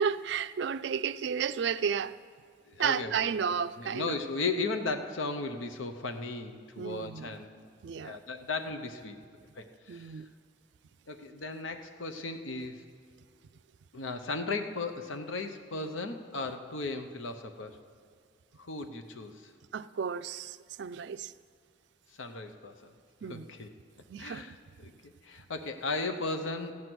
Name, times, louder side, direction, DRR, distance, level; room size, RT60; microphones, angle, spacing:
voice 1, 0.0-2.1 2.8-4.2 6.8-7.3 7.8-8.2 9.9-10.3 19.7-21.3 23.2-23.5 24.1-24.6, right 7 dB, 65° right, 0.3 m, -32 dB
voice 2, 2.6-7.7 8.0-9.2 9.6-10.2 11.1-12.8 13.9-17.8 18.6-19.5 22.2-22.9 23.3-23.7 24.2-26.7, left 3 dB, 85° left, 0.8 m, -36 dB
15.0 x 9.5 x 6.1 m
head